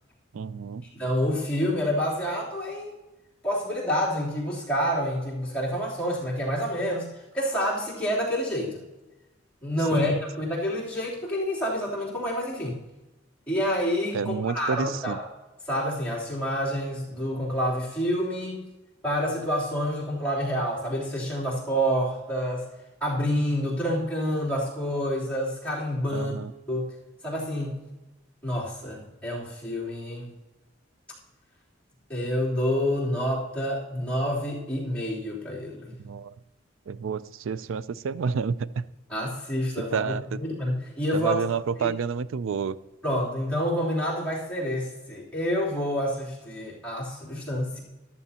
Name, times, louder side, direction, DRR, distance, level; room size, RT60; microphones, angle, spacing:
voice 1, 0.3-0.8 9.9-10.2 14.1-15.2 26.1-26.5 36.0-36.3 36.9-38.8 39.9-40.4 41.1-42.8, right 6 dB, 75° right, 17 dB, 0.4 m, -29 dB
voice 2, 0.9-2.9 3.4-7.1 7.3-8.8 9.6-12.8 13.5-15.3 15.7-18.7 19.0-22.6 23.0-26.4 26.7-26.9 27.2-27.7 28.4-30.3 32.1-36.0 39.1-41.4 41.8-41.9 43.0-47.8, equal, 5° left, -7 dB, 3.2 m, -28 dB
14.0 x 11.5 x 2.8 m, 1.1 s
head